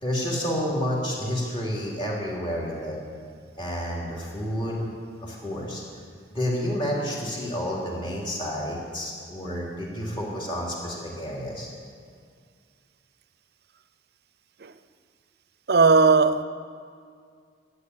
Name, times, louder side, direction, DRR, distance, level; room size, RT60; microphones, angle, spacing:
voice 1, 0.0-3.0 3.6-4.8 5.2-5.8 6.3-11.7, equal, 30° left, 3.1 m, -30 dB
voice 2, 15.7-16.4, right 4 dB, 60° right, 0.6 m, -17 dB
12.5 x 8.3 x 9.5 m
head